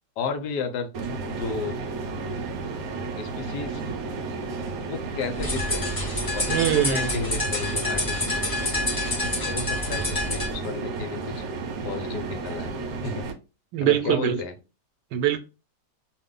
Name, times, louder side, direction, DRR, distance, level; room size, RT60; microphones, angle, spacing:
voice 1, 0.2-0.9 1.3-1.8 3.2-3.9 4.9-5.9 6.3-9.0 9.4-11.4 11.8-12.7 13.0-13.3 13.8-14.5, left 5 dB, 80° left, 1.2 m, -33 dB
sound 1, 0.9-13.3, right 3 dB, 70° right, 0.9 m, -32 dB
sound 2, 5.4-10.5, left 2 dB, 30° left, 0.4 m, -28 dB
voice 2, 6.5-7.5 13.7-14.4 15.1-15.4, right 10 dB, 85° right, 1.2 m, -23 dB
2.6 x 2.5 x 3.6 m
omnidirectional pair, 1.8 m